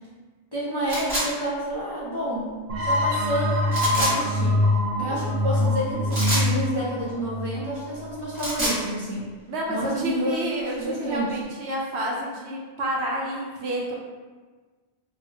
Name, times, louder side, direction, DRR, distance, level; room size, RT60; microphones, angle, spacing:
voice 1, 0.5-2.6 2.8-4.7 5.0-9.3 9.7-10.4 10.8-11.4, right 1 dB, 35° left, -8 dB, 0.4 m, -29 dB
sound 1, 0.9-1.3 3.7-4.1 6.1-6.5 8.2-8.8, right 1 dB, 30° right, 1.0 m, -26 dB
sound 2, 2.7-8.2, left 1 dB, 55° right, 0.4 m, -24 dB
voice 2, 9.5-14.0, right 1 dB, 85° right, -3 dB, 1.0 m, -29 dB
4.0 x 2.0 x 2.8 m, 1.4 s
omnidirectional pair, 1.1 m